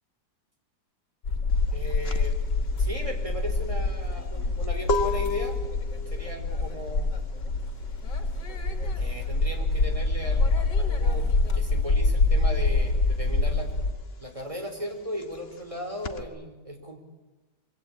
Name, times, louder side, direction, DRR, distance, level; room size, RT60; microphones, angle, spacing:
sound 1, 1.2-13.9, left 3 dB, 85° left, 3.1 m, -26 dB
sound 2, 1.5-11.7 12.0-16.2, left 2 dB, 40° left, 1.6 m, -35 dB
voice 1, 1.7-2.3 2.8-5.6 6.1-7.1 8.9-11.3 11.5-13.7 14.2-17.0, equal, 20° right, 3 dB, 4.4 m, -37 dB
26.0 x 25.0 x 8.7 m, 1.1 s
omnidirectional pair, 1.8 m